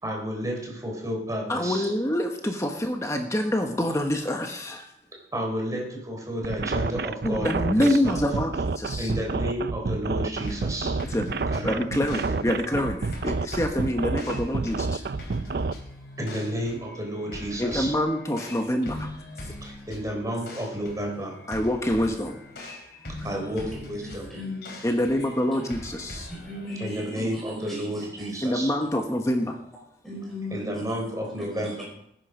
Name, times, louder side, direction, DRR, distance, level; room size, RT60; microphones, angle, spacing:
voice 1, 0.0-1.9 5.3-8.3 9.0-11.0 11.5-12.6 16.2-17.9 19.6-21.3 23.2-24.3 26.8-28.7 30.5-31.8, equal, 20° right, 0 dB, 3.9 m, -31 dB
voice 2, 1.5-4.8 7.2-9.1 11.1-11.3 11.6-15.0 17.6-19.1 21.5-22.4 24.8-26.3 28.4-29.6, left 1 dB, 15° left, 4 dB, 1.2 m, -26 dB
sound 1, 6.4-15.7, right 4 dB, 60° right, 0.5 m, -29 dB
sound 2, 10.4-27.1, left 1 dB, 60° left, 4.0 m, -42 dB
voice 3, 23.2-24.6 25.5-25.6 26.3-28.5 30.0-31.8, left 1 dB, ahead, -4 dB, 5.1 m, -38 dB
19.0 x 10.5 x 5.1 m, 0.75 s
head